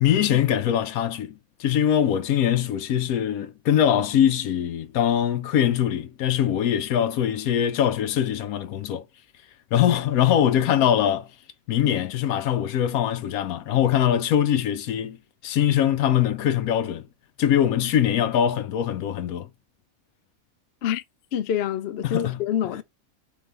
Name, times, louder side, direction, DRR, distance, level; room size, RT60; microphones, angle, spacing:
voice 1, 0.0-9.0 9.7-11.3 11.7-15.2 15.4-17.0 17.4-19.5 22.0-22.4, left 10 dB, 80° left, 1.1 m, -22 dB
voice 2, 21.3-22.8, left 9 dB, 60° left, 0.7 m, -26 dB
4.1 x 3.4 x 3.0 m
omnidirectional pair, 1.5 m